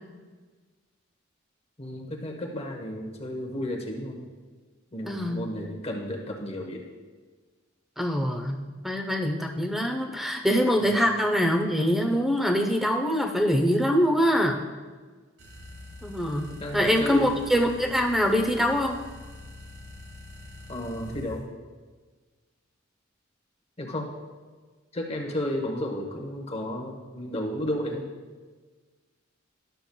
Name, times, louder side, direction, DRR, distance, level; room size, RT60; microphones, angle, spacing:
voice 1, 1.8-4.3 4.9-6.8 10.8-10.9 16.6-17.4 20.7-21.5 23.8-24.1 24.9-28.1, left 1 dB, 30° left, 1 dB, 0.9 m, -33 dB
voice 2, 5.1-5.6 8.0-14.6 16.0-19.0, equal, ahead, 2 dB, 0.6 m, -24 dB
sound 1, 15.4-21.4, left 2 dB, 60° right, 1.3 m, -44 dB
11.5 x 6.7 x 2.2 m, 1.4 s
head